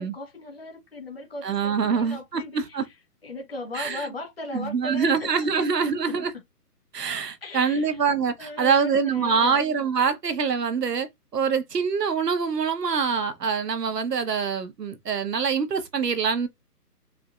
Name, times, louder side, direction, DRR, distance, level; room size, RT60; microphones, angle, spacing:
voice 1, 0.0-2.9 3.2-5.3 5.6-6.2 7.4-8.0 8.4-9.6, left 2 dB, 40° left, 1.6 m, -37 dB
voice 2, 1.4-2.8 3.7-4.1 4.5-6.3 6.9-16.5, right 6 dB, 80° right, 1.2 m, -25 dB
4.7 x 3.0 x 2.4 m
hypercardioid pair, 180°, 48 cm